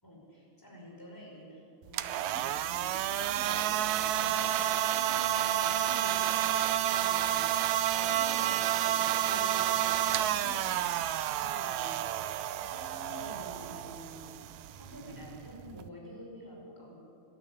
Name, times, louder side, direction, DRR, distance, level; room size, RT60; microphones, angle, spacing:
voice 1, 0.0-7.6 7.9-10.9 11.2-14.4 14.8-16.9, equal, 5° left, -3 dB, 5.4 m, -48 dB
sound 1, 1.8-15.9, right 11 dB, 85° right, 2.1 m, -30 dB
23.0 x 12.0 x 9.7 m, 2.5 s
omnidirectional pair, 3.3 m